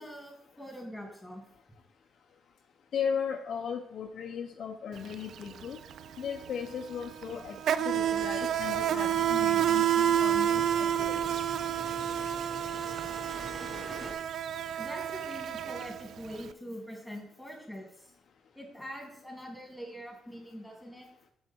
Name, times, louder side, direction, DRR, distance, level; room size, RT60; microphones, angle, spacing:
voice 1, 0.0-1.4 14.8-18.1 18.5-21.1, equal, 5° left, 0 dB, 2.6 m, -43 dB
voice 2, 2.9-5.8 6.2-7.6 7.8-11.2, left 7 dB, 60° left, 4 dB, 0.6 m, -36 dB
Insect, 5.0-5.1 5.4-16.4, right 10 dB, 65° right, 0.3 m, -29 dB
sound 1, 7.9-14.1, equal, 15° right, 2.8 m, -45 dB
6.4 x 6.0 x 4.4 m, 0.69 s
cardioid pair, 90°, 0 cm